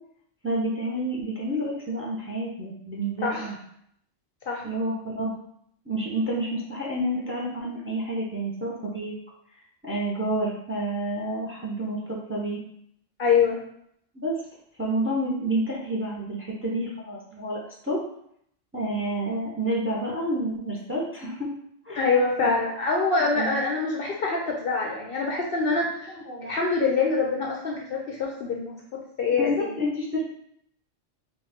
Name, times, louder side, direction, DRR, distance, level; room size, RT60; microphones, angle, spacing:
voice 1, 0.4-3.6 4.6-5.3 5.9-9.1 9.8-12.6 14.1-14.4 14.8-17.6 17.8-18.0 18.7-21.5 21.8-22.1 22.4-22.6 23.3-23.6 26.1-26.5 29.3-30.2, right 1 dB, 15° right, -4 dB, 0.6 m, -29 dB
voice 2, 13.2-13.6 22.0-26.1 26.4-28.7 29.2-29.7, left 4 dB, 60° left, -1 dB, 0.7 m, -25 dB
4.3 x 2.5 x 3.5 m, 0.70 s
omnidirectional pair, 1.3 m